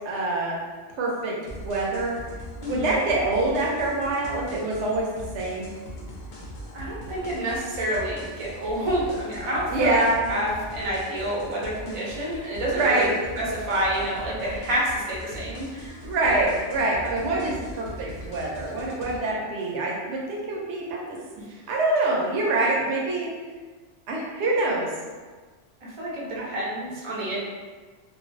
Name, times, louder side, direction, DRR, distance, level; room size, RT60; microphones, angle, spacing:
voice 1, 0.0-0.6 0.9-1.4 1.6-2.2 2.7-5.1 5.3-5.7 9.7-10.2 12.7-13.1 16.0-21.2 21.7-23.3 24.1-24.9 26.4-26.5, right 2 dB, 75° right, -3 dB, 0.9 m, -25 dB
sound 1, 1.5-19.2, equal, 60° left, 0.6 m, -40 dB
voice 2, 6.7-10.0 10.3-13.1 13.4-16.0 21.4-21.5 25.8-27.4, right 1 dB, 40° right, -5 dB, 0.5 m, -28 dB
2.3 x 2.2 x 2.4 m, 1.4 s
omnidirectional pair, 1.2 m